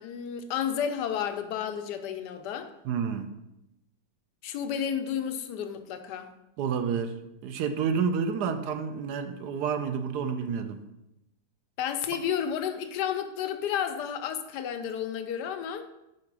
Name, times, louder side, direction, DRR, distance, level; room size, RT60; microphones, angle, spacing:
voice 1, 0.0-2.7 4.4-6.3 11.8-15.8, left 8 dB, 85° left, 8 dB, 1.2 m, -31 dB
voice 2, 2.8-3.4 6.6-7.1 7.4-10.8, right 6 dB, 80° right, 8 dB, 1.2 m, -29 dB
5.7 x 3.9 x 4.6 m, 0.88 s
omnidirectional pair, 1.8 m